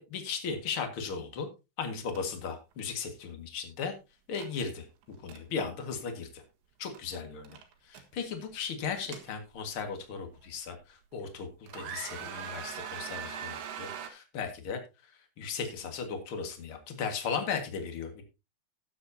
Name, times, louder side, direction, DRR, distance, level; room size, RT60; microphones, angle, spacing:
voice 1, 0.0-1.5 1.8-3.9 4.3-6.4 6.8-7.6 7.8-18.2, left 6 dB, 45° left, 5 dB, 1.8 m, -37 dB
sound 1, 2.1-2.2 2.5-2.7 4.3-4.5 5.0-5.4 6.9-7.2 7.4-8.0 8.8-9.8 10.4-10.5 11.1-11.4 11.7-14.1, right 8 dB, 90° right, 3.8 m, -41 dB
18.0 x 7.8 x 2.8 m, 0.27 s
omnidirectional pair, 4.9 m